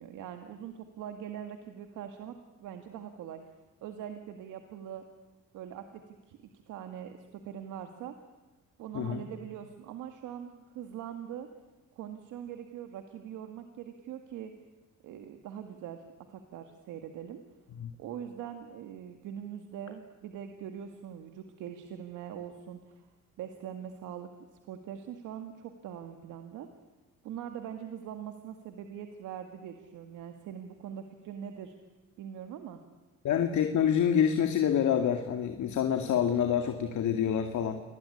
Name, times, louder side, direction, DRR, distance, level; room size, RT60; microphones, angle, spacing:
voice 1, 0.0-3.4 3.8-5.1 5.5-6.4 6.7-8.2 8.8-11.5 11.9-14.5 15.0-17.4 18.0-23.1 23.4-24.3 24.6-26.7 27.2-31.7 32.2-32.8, right 9 dB, 90° right, 6 dB, 2.0 m, -42 dB
voice 2, 33.2-37.8, left 8 dB, 70° left, 6 dB, 2.2 m, -27 dB
28.0 x 21.5 x 9.9 m, 1.1 s
cardioid pair, 90°, 30 cm